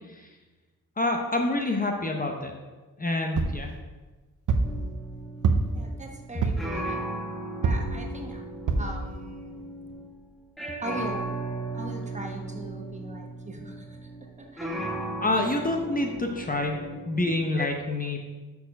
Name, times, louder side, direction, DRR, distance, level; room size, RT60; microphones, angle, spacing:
voice 1, 1.0-2.5 3.0-3.7 15.2-18.2, left 2 dB, 25° left, 2 dB, 0.8 m, -27 dB
sound 1, 3.4-3.7 4.5-4.8 5.4-5.8 6.4-6.7 7.6-8.0 8.7-9.0 9.5-9.6 9.9-10.0, right 4 dB, 60° right, 0.8 m, -25 dB
sound 2, 4.6-10.2 10.6-17.7, right 2 dB, ahead, 1.0 m, -36 dB
voice 2, 5.7-7.2 7.6-8.4 8.8-9.6 10.8-11.3 11.7-14.0 14.4-14.9, right 1 dB, 20° right, 1 dB, 1.1 m, -40 dB
6.9 x 4.3 x 5.3 m, 1.2 s
cardioid pair, 85°, 35 cm